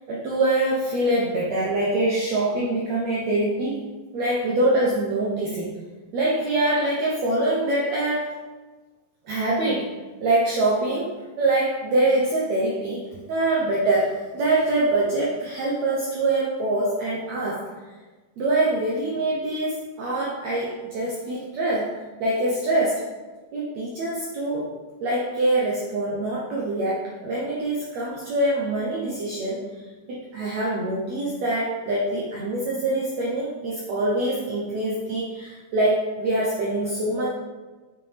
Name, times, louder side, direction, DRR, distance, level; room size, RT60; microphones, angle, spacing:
voice 1, 0.1-3.8 4.1-5.8 6.1-8.4 9.2-9.9 10.2-17.7 18.4-21.9 22.2-23.0 23.5-24.7 25.0-37.3, right 2 dB, 75° right, -4 dB, 1.6 m, -24 dB
7.3 x 5.7 x 3.4 m, 1.3 s
omnidirectional pair, 4.2 m